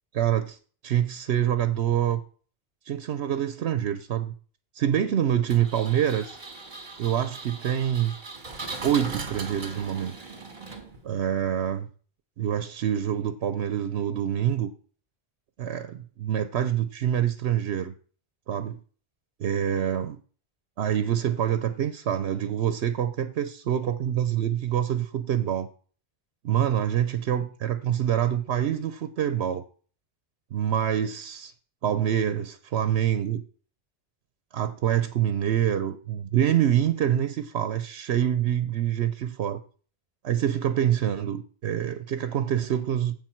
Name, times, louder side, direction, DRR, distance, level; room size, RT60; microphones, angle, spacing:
voice 1, 0.1-0.6 0.8-2.2 2.9-4.3 4.7-6.4 7.0-8.1 8.8-10.1 11.0-11.9 12.4-14.7 15.6-17.9 18.5-18.8 19.4-20.2 20.8-25.7 26.4-29.6 30.5-31.5 31.8-33.4 34.5-39.6 40.2-43.1, right 10 dB, 85° right, 0.9 m, -26 dB
Engine, 5.5-11.2, right 3 dB, 50° right, 1.8 m, -39 dB
15.0 x 5.3 x 4.5 m
omnidirectional pair, 1.1 m